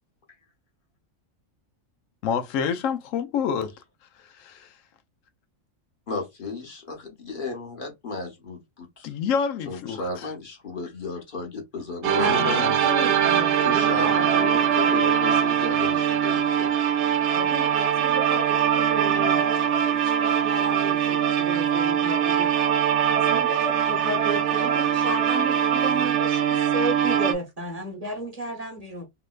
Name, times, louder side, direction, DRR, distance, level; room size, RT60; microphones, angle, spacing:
voice 1, 2.2-3.7 4.1-4.8 9.0-10.3 12.3-12.8, left 7 dB, 85° left, 1.0 m, -28 dB
voice 2, 6.1-9.1 9.7-12.5 13.6-16.7, left 3 dB, 45° left, 1.0 m, -34 dB
sound 1, 12.0-27.3, right 9 dB, 70° right, 0.9 m, -22 dB
voice 3, 12.2-14.9 17.3-22.5 23.2-29.1, right 1 dB, 35° right, 0.9 m, -33 dB
3.2 x 2.9 x 2.3 m
omnidirectional pair, 1.3 m